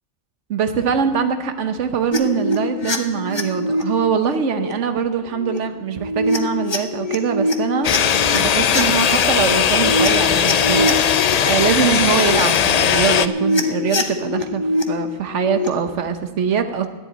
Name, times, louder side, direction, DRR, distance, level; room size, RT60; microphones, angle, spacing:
voice 1, 0.5-7.9 8.3-16.9, right 7 dB, 90° right, 8 dB, 1.2 m, -23 dB
sound 1, 2.1-3.8 4.2-4.7 5.3-5.6 5.9-8.4 8.7-11.3 12.0-12.4 12.8-14.8 15.3-15.7, left 1 dB, 25° left, 0.9 m, -24 dB
sound 2, 7.8-13.3, left 8 dB, 60° left, 0.4 m, -18 dB
11.5 x 7.7 x 9.0 m, 1.2 s
omnidirectional pair, 1.2 m